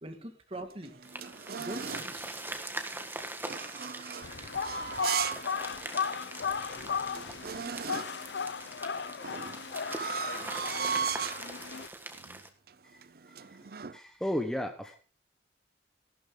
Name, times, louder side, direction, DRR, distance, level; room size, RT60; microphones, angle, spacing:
voice 1, 0.0-1.0 1.6-2.3 3.9-5.3, right 1 dB, 35° right, 7 dB, 2.0 m, -44 dB
sound 1, 0.5-2.1 3.4-5.5 5.9-6.0 6.6-6.7 6.9-8.3 9.2-11.5 12.1-12.4 12.7-14.0, right 6 dB, 55° right, 0.6 m, -37 dB
sound 2, 1.0-12.5, right 2 dB, 10° right, 1.6 m, -42 dB
sound 3, 4.2-11.9, left 6 dB, 75° left, 0.7 m, -36 dB
voice 2, 13.3-15.0, left 1 dB, 5° left, 5 dB, 1.1 m, -36 dB
15.0 x 12.5 x 3.8 m, 0.37 s
head